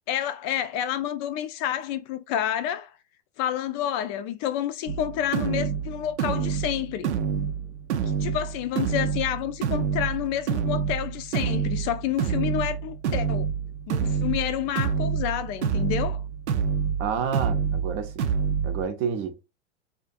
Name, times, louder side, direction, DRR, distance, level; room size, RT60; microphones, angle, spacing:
voice 1, 0.1-3.0 3.4-7.1 8.0-13.5 13.9-16.2, left 11 dB, 45° left, 0.4 m, -29 dB
sound 1, 4.9-18.9, right 7 dB, 80° right, 0.6 m, -27 dB
voice 2, 17.0-18.1 18.6-19.4, right 6 dB, 40° right, 0.6 m, -29 dB
2.5 x 2.5 x 2.5 m
hypercardioid pair, 100°, 33 cm